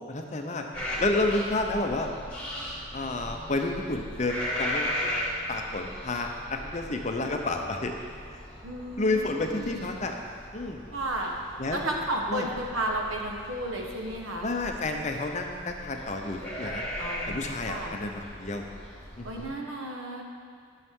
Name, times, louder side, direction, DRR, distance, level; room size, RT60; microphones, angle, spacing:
voice 1, 0.1-0.7 1.0-2.1 2.9-4.9 5.5-7.9 9.0-10.1 10.5-10.8 11.6-11.8 12.3-12.5 14.4-16.9 17.3-18.6 19.2-19.5, left 2 dB, 35° left, 3 dB, 0.6 m, -30 dB
sound 1, 0.7-19.5, equal, 10° left, 2.3 m, -38 dB
voice 2, 8.6-9.8 10.9-11.3 11.7-14.5 17.0-17.9 19.2-20.2, right 1 dB, 80° right, 0 dB, 1.1 m, -33 dB
11.0 x 6.4 x 3.7 m, 2.2 s
head